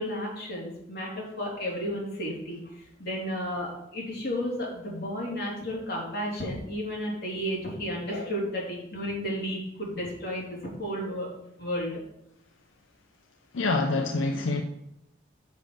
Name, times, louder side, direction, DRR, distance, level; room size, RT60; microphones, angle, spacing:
voice 1, 0.0-11.3 11.6-12.0, equal, 55° left, 3.2 m, -33 dB
voice 2, 13.5-14.6, left 3 dB, 90° left, 0.6 m, -26 dB
6.8 x 5.4 x 6.4 m
head